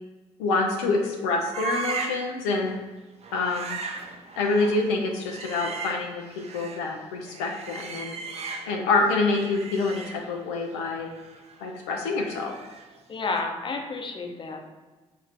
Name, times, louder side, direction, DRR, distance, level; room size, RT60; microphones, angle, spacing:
voice 1, 0.4-2.7 3.3-3.8 4.4-8.2 8.7-11.1 11.6-12.5, left 3 dB, 85° left, 1 dB, 0.4 m, -26 dB
sound 1, 1.5-2.3 2.6-2.8 3.2-6.9 7.2-8.9 9.2-13.0 13.2-13.4, right 5 dB, 50° right, 0.5 m, -37 dB
voice 2, 13.1-14.7, left 3 dB, 35° left, 3 dB, 0.7 m, -31 dB
3.1 x 2.6 x 4.0 m, 1.2 s
hypercardioid pair, 55°, 14 cm